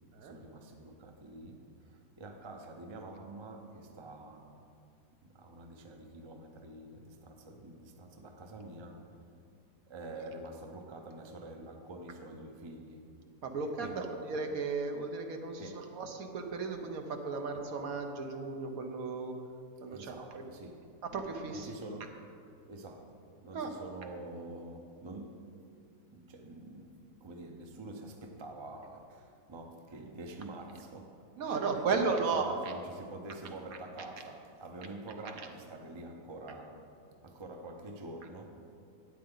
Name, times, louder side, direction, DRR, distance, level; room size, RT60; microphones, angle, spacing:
voice 1, 0.2-4.7 5.2-9.3 9.9-13.1 13.8-14.1 15.6-16.0 19.9-21.0 21.5-22.2 22.6-25.6 26.1-36.9 37.2-38.6, right 2 dB, 45° right, 3 dB, 0.3 m, -47 dB
voice 2, 13.4-19.3 19.8-20.5 21.0-21.7 23.5-23.7 31.4-32.8 33.7-33.8 34.8-34.9 35.2-35.5, right 4 dB, 60° right, 4 dB, 1.2 m, -35 dB
12.5 x 8.9 x 3.9 m, 2.4 s
omnidirectional pair, 1.8 m